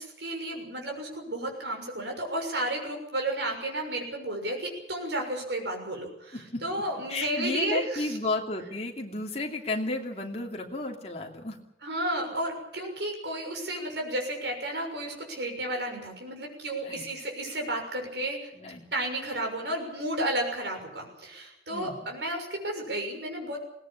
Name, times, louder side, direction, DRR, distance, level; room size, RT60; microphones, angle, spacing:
voice 1, 0.0-8.2 11.8-18.5 18.9-23.7, right 1 dB, 75° right, 2 dB, 6.5 m, -32 dB
voice 2, 6.3-6.6 7.1-11.6 16.8-17.0 18.5-18.9 21.7-22.0, left 2 dB, 35° left, 1 dB, 2.9 m, -33 dB
21.0 x 18.5 x 8.6 m, 0.81 s
head